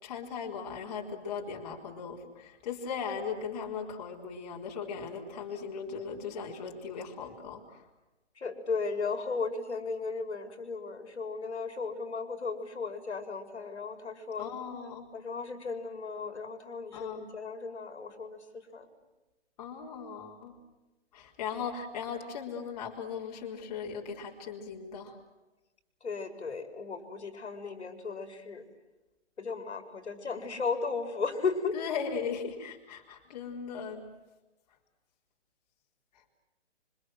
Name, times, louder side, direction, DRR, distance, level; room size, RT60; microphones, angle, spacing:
voice 1, 0.0-7.9 14.4-15.1 16.9-17.2 19.6-20.6 21.1-25.2 31.7-34.1 36.1-36.2, left 6 dB, 35° left, -1 dB, 4.2 m, -38 dB
voice 2, 8.4-14.5 15.1-18.9 26.0-28.6 29.4-31.8, left 4 dB, 65° left, 7 dB, 4.7 m, -35 dB
27.5 x 25.5 x 7.8 m, 1.1 s
hypercardioid pair, 155°, 35 cm